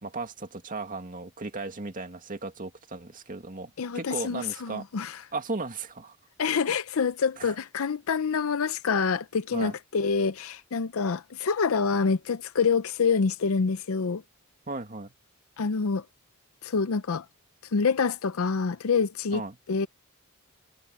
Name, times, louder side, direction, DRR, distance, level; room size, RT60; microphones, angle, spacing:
voice 1, 0.0-4.9 5.3-6.2 7.4-7.5 9.5-9.7 14.7-15.1 19.3-19.6, right 3 dB, 40° right, 2.1 m, -36 dB
voice 2, 3.8-5.2 6.4-14.2 15.6-16.0 16.6-17.2 17.7-19.4 19.7-19.9, left 5 dB, 70° left, 0.6 m, -26 dB
head